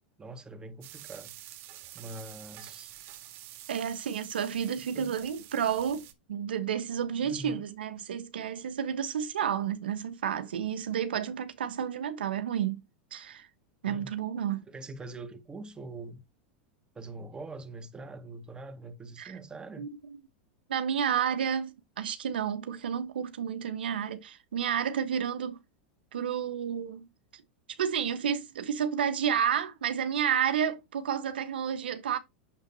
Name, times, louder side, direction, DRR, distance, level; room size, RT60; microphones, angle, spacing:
voice 1, 0.2-1.3 1.9-2.9 4.9-5.1 7.2-7.6 13.9-14.2 14.7-16.2 16.9-19.9, right 2 dB, 15° right, 1.9 m, -43 dB
sound 1, 0.8-6.1, right 14 dB, 50° right, 1.8 m, -48 dB
voice 2, 3.7-12.8 13.1-13.5 13.8-14.6 19.2-19.4 19.8-19.9 20.7-25.6 26.1-27.1 27.3-27.4 27.7-32.2, right 8 dB, 80° right, 1.2 m, -31 dB
8.9 x 7.4 x 2.8 m
hypercardioid pair, 105°, 5 cm